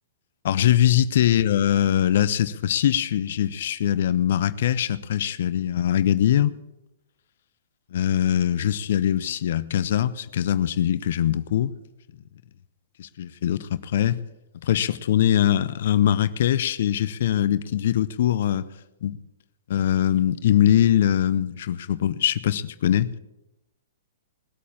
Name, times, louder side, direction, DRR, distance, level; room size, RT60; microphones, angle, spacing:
voice 1, 0.4-6.5 7.9-11.7 13.0-14.2 14.6-18.7 19.0-19.2 19.7-23.1, left 10 dB, 60° left, 0.6 m, -22 dB
20.0 x 8.4 x 7.0 m
figure-of-eight pair, 115°, 0 cm